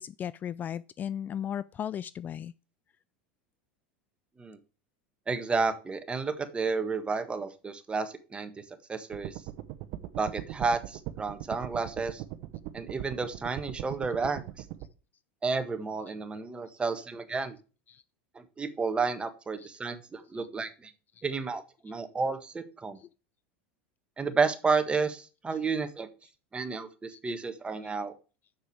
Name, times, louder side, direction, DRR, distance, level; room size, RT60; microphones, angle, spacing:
voice 1, 0.0-2.5 16.1-16.2 17.9-18.0 19.6-19.7 20.3-20.4 23.0-23.1 27.1-27.3, left 9 dB, 30° left, 0.3 m, -36 dB
voice 2, 5.3-8.5 8.9-9.3 10.2-12.2 12.7-14.4 15.4-17.6 18.3-20.9 21.2-23.0 24.2-26.1 26.5-28.1, right 4 dB, 20° right, 1.5 m, -31 dB
sound 1, 9.1-14.9, right 15 dB, 60° right, 1.0 m, -40 dB
7.2 x 6.6 x 4.7 m
hypercardioid pair, 90°, 6 cm